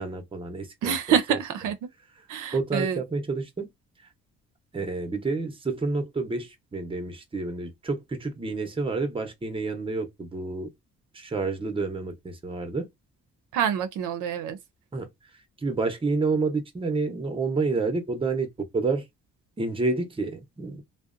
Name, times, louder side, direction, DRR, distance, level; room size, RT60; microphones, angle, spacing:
voice 1, 0.0-0.9 1.3-1.4 2.5-3.7 4.7-10.7 11.1-12.9 14.9-15.1 15.6-19.0 19.6-20.8, right 3 dB, 20° right, 0.6 m, -29 dB
voice 2, 0.8-1.7 2.3-3.0 13.5-14.6, right 8 dB, 80° right, 0.5 m, -26 dB
2.6 x 2.0 x 2.4 m
cardioid pair, 90°, 30 cm